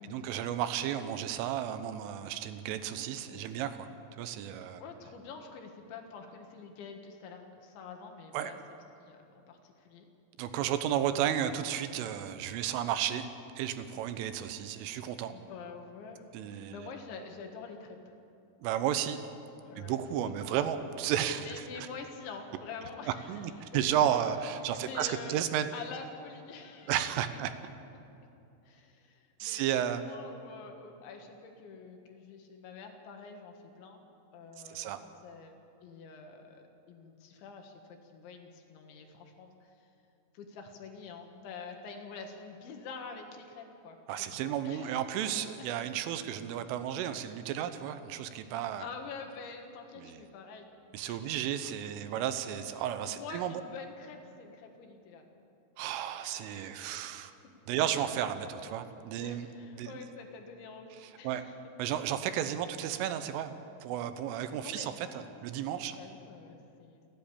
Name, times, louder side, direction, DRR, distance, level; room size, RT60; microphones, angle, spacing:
voice 1, 0.0-3.9 4.2-4.8 8.3-8.5 10.4-13.2 13.6-15.3 16.3-16.9 18.6-19.2 19.8-21.9 23.3-25.7 26.9-27.5 29.4-30.0 34.7-35.0 44.1-48.9 50.0-50.2 50.9-53.6 55.8-57.3 57.7-59.5 59.7-60.0 61.0-61.4 61.8-66.0, right 10 dB, 80° right, 10 dB, 3.4 m, -33 dB
voice 2, 3.0-3.7 4.8-8.6 9.0-10.1 15.3-16.2 16.5-18.1 19.6-20.9 21.5-24.2 24.6-25.4 25.7-27.0 28.7-34.0 34.3-39.8 40.3-44.0 44.3-45.0 45.6-45.7 48.8-50.7 51.0-51.9 52.7-55.3 56.2-57.0 59.2-61.6 64.6-67.0, left 5 dB, 70° left, 4 dB, 3.8 m, -47 dB
29.5 x 10.5 x 8.7 m, 2.7 s
omnidirectional pair, 5.7 m